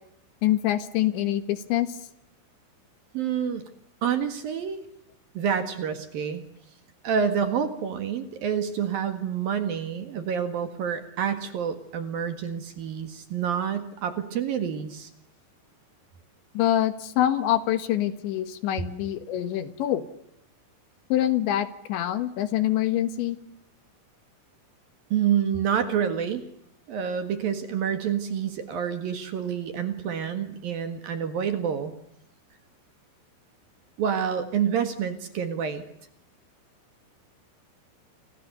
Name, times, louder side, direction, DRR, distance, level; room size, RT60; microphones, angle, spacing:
voice 1, 0.4-2.0 16.6-20.1 21.1-23.4, left 12 dB, 70° left, 11 dB, 3.6 m, -25 dB
voice 2, 3.1-3.7 4.0-4.8 5.3-6.4 7.0-15.1 25.1-26.4 26.9-31.9 34.0-35.8, right 8 dB, 60° right, 8 dB, 3.0 m, -28 dB
29.5 x 26.5 x 6.8 m, 0.74 s
omnidirectional pair, 5.6 m